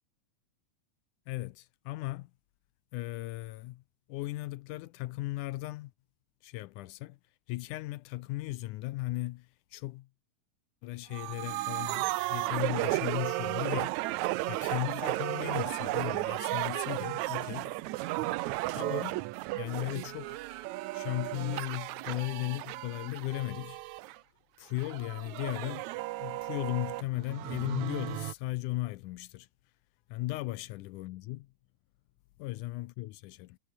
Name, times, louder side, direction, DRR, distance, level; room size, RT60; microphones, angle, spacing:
voice 1, 1.3-2.3 2.9-3.8 4.1-5.9 6.4-7.2 7.5-10.1 10.8-14.2 14.5-17.8 18.7-19.3 19.6-20.5 20.9-23.8 24.6-25.9 26.2-29.5 30.1-31.5 32.4-33.6, left 18 dB, 80° left, 2.0 m, -36 dB
sound 1, 11.1-24.2 24.8-28.3, right 19 dB, 85° right, 1.7 m, -34 dB
omnidirectional pair, 3.9 m